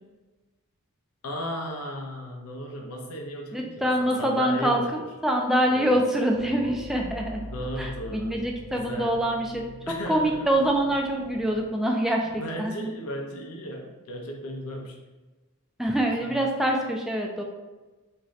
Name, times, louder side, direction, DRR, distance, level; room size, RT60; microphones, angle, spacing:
voice 1, 1.2-5.1 5.6-6.0 7.5-8.4 8.7-9.2 9.9-10.7 12.2-15.0 16.2-16.5, equal, 70° left, 1 dB, 0.6 m, -36 dB
voice 2, 3.5-4.8 5.2-7.5 7.8-9.6 10.1-12.7 15.8-17.4, right 1 dB, ahead, 0 dB, 0.3 m, -25 dB
sound 1, 6.3-11.6, equal, 50° right, 0.7 m, -43 dB
3.6 x 2.7 x 3.1 m, 1.2 s
head